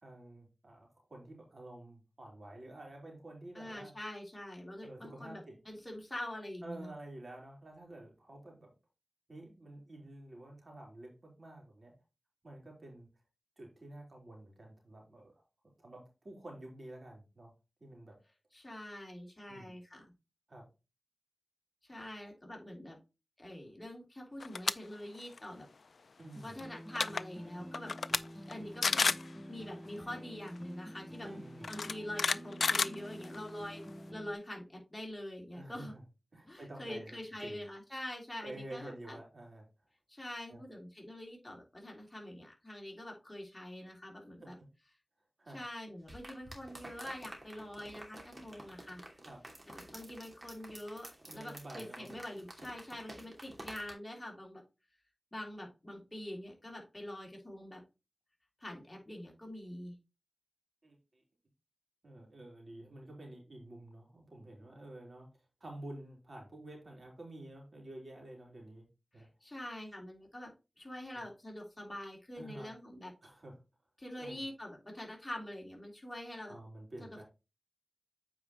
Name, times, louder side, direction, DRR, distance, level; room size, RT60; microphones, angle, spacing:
voice 1, 0.0-3.9 4.8-5.6 6.6-8.7 9.3-11.9 12.4-13.1 13.6-15.4 15.8-17.5 17.8-18.2 19.5-19.7 20.5-20.7 26.2-26.6 31.2-31.7 35.5-36.0 36.3-37.6 38.4-39.6 40.5-40.6 44.4-44.5 45.4-45.6 49.3-49.4 51.3-52.2 60.8-61.2 62.0-65.3 65.6-68.9 69.1-69.3 71.1-71.2 72.4-72.7 73.2-73.6 74.2-74.4 76.5-77.2, right 1 dB, 60° right, 0 dB, 3.5 m, -50 dB
voice 2, 3.5-6.9 18.5-20.1 21.8-23.0 23.4-25.7 26.4-27.9 28.2-29.1 29.5-31.3 31.7-33.8 34.1-35.9 36.4-39.2 40.1-44.6 45.5-49.0 49.7-54.6 55.3-57.8 58.6-59.9 69.1-73.1 74.0-76.6 77.0-77.2, left 1 dB, 20° left, -1 dB, 3.5 m, -45 dB
sound 1, 24.4-24.7 25.1-25.4 26.6-26.7 26.9-27.2 27.7-28.2 28.5-28.6 28.8-29.3 30.5-30.6 31.6-33.5, left 4 dB, 85° left, 0.3 m, -30 dB
sound 2, 26.3-34.3, equal, 10° right, 1.2 m, -49 dB
sound 3, 46.1-53.9, right 1 dB, 35° right, 2.7 m, -51 dB
8.8 x 4.9 x 3.1 m, 0.27 s
wide cardioid pair, 65°, 0 cm